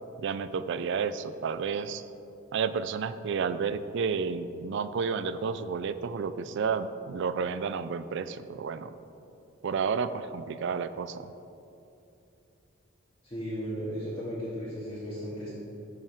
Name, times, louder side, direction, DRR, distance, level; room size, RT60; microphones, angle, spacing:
voice 1, 0.2-2.1 2.5-8.9 9.6-11.3, right 5 dB, 60° right, 13 dB, 0.4 m, -31 dB
voice 2, 13.2-15.5, equal, 25° left, -11 dB, 2.1 m, -35 dB
14.0 x 5.6 x 3.6 m, 2.8 s
head